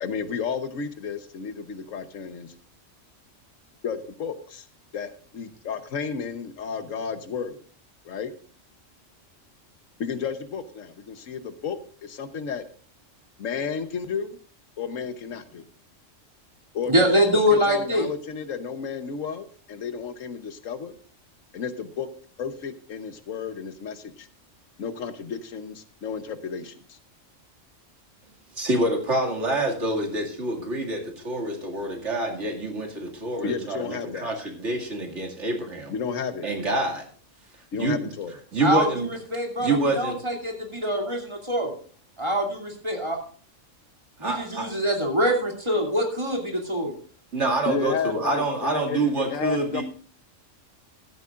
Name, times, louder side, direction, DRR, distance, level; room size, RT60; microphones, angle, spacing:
voice 1, 0.0-2.5 3.8-4.6 4.9-7.5 8.0-8.3 10.0-12.6 13.4-14.4 14.8-15.7 16.7-17.1 17.3-20.9 21.5-22.1 22.4-24.3 24.8-27.0 33.4-34.3 35.9-36.5 37.7-38.3 47.6-49.8, left 6 dB, 90° left, 10 dB, 1.4 m, -32 dB
voice 2, 16.9-18.1 38.6-39.7 40.0-41.7 42.2-43.2 44.2-46.9, equal, 20° right, 0 dB, 2.6 m, -24 dB
voice 3, 28.5-35.9 36.4-37.0 37.8-38.1 38.5-39.1 39.6-40.2 44.2-44.7 47.3-49.8, right 2 dB, 65° right, 2 dB, 2.6 m, -26 dB
14.5 x 12.0 x 2.5 m, 0.43 s
omnidirectional pair, 1.3 m